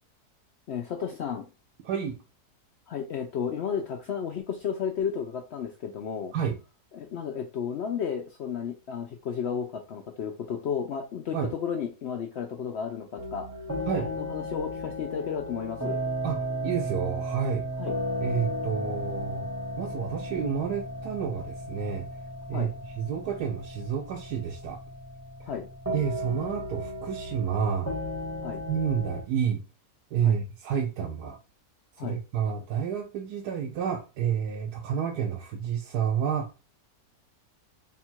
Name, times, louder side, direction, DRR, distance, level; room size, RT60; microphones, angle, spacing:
voice 1, 0.7-1.4 2.9-6.3 6.9-13.5 13.9-16.0 17.8-17.9 22.5-22.7 25.5-25.7 28.4-28.6 30.2-30.4 32.0-32.2, left 7 dB, 80° left, 0.5 m, -33 dB
voice 2, 1.8-2.2 6.3-6.6 11.3-11.5 13.9-14.1 16.2-17.7 18.2-19.5 19.8-22.1 22.5-24.8 25.4-25.5 25.9-27.9 28.7-29.6 30.1-31.4 32.0-36.5, right 8 dB, 80° right, 1.2 m, -30 dB
sound 1, 13.2-29.2, equal, 15° right, 0.7 m, -35 dB
3.5 x 2.4 x 4.4 m
omnidirectional pair, 1.7 m